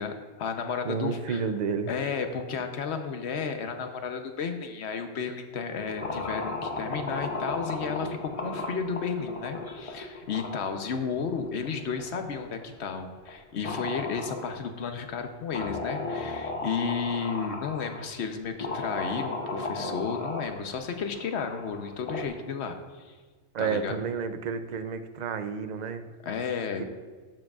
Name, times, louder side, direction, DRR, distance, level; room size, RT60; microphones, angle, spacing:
voice 1, 0.0-1.5 1.9-23.2 23.6-24.0 26.2-26.8, left 6 dB, 80° left, 6 dB, 1.1 m, -33 dB
voice 2, 0.8-1.9 23.5-26.1 26.8-26.9, right 6 dB, 50° right, 10 dB, 0.6 m, -30 dB
sound 1, 5.7-12.9 13.3-13.4 13.6-14.8 15.5-18.1 18.6-22.3, left 3 dB, 35° left, 0.7 m, -35 dB
12.0 x 7.5 x 2.4 m, 1.5 s
omnidirectional pair, 1.1 m